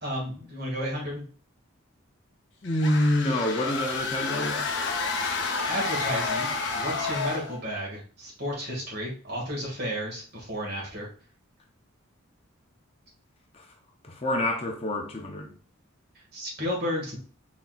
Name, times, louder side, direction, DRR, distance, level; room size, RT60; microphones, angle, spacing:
voice 1, 0.0-1.2 5.7-11.1 16.1-17.2, equal, 50° right, 1.8 m, -32 dB
sound 1, 2.6-7.6, left 4 dB, 55° left, 0.8 m, -30 dB
voice 2, 2.6-4.7 13.5-13.6 14.0-15.5, left 1 dB, 30° left, 0.6 m, -27 dB
4.2 x 4.0 x 2.3 m
head